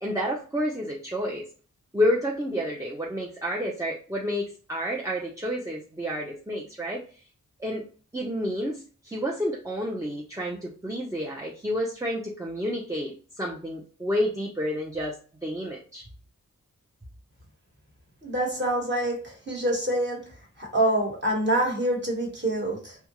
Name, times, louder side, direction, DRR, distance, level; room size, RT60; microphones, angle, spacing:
voice 1, 0.0-1.5 1.9-7.0 7.6-7.8 8.1-16.1, equal, 10° right, -3 dB, 0.5 m, -30 dB
voice 2, 18.2-20.2 20.6-23.0, right 1 dB, 35° right, -1 dB, 1.2 m, -26 dB
2.7 x 2.2 x 2.9 m, 0.39 s
wide cardioid pair, 60°, 33 cm